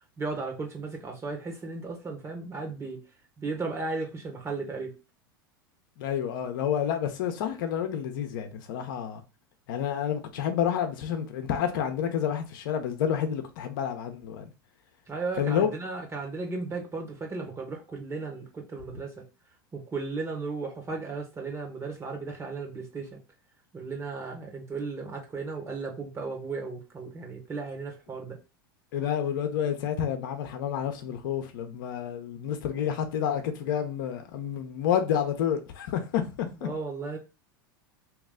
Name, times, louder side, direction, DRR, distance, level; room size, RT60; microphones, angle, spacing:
voice 1, 0.2-3.0 3.4-5.0 15.1-19.2 19.7-23.2 23.7-28.4 36.6-37.2, right 3 dB, 20° right, 1.3 m, -35 dB
voice 2, 6.0-9.2 9.7-14.5 15.4-15.7 28.9-36.7, left 9 dB, 65° left, 0.8 m, -29 dB
3.1 x 3.0 x 3.7 m
hypercardioid pair, 95°, 12 cm